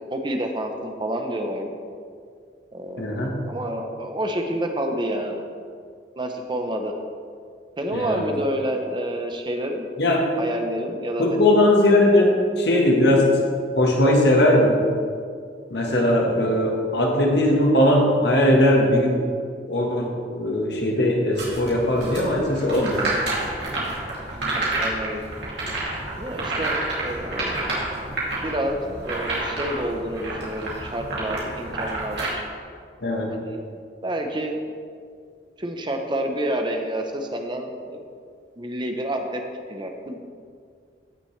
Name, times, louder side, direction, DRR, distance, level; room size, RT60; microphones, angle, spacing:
voice 1, 0.1-1.7 2.7-3.2 3.4-5.4 6.2-6.9 7.8-9.9 10.4-11.3 24.3-25.2 26.2-27.5 28.4-32.4 33.5-33.6 34.0-34.6 35.6-38.0 38.6-39.4 39.7-40.2, right 1 dB, 25° right, 4 dB, 0.8 m, -28 dB
voice 2, 3.0-3.4 7.9-8.2 10.0-10.3 11.2-13.5 13.8-14.8 15.7-19.2 19.7-23.0 33.0-33.3, left 1 dB, 65° left, 0 dB, 1.5 m, -19 dB
sound 1, 21.3-32.3, right 2 dB, 70° right, 2.7 m, -29 dB
15.5 x 6.1 x 3.3 m, 2.1 s
head